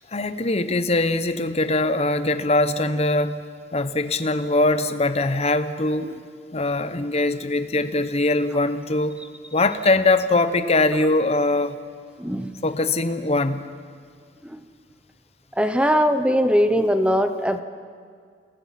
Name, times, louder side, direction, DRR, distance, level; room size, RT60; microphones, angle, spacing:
voice 1, 0.1-3.4 3.7-6.1 6.5-9.2 9.5-11.8 12.6-13.6, left 2 dB, 35° left, 11 dB, 0.9 m, -22 dB
voice 2, 12.2-12.6 14.4-14.6 15.6-17.6, equal, 5° right, 9 dB, 0.9 m, -21 dB
29.5 x 19.0 x 5.9 m, 2.1 s
head